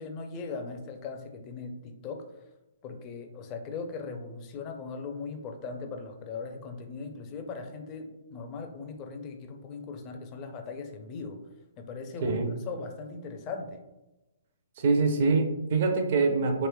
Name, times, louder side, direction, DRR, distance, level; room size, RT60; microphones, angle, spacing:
voice 1, 0.0-2.2 2.8-11.4 11.8-12.4 12.7-13.8, left 4 dB, 30° left, 5 dB, 0.5 m, -39 dB
voice 2, 14.8-16.7, right 4 dB, 55° right, 5 dB, 0.5 m, -24 dB
3.1 x 3.0 x 2.2 m, 1.0 s
hypercardioid pair, 130°, 0 cm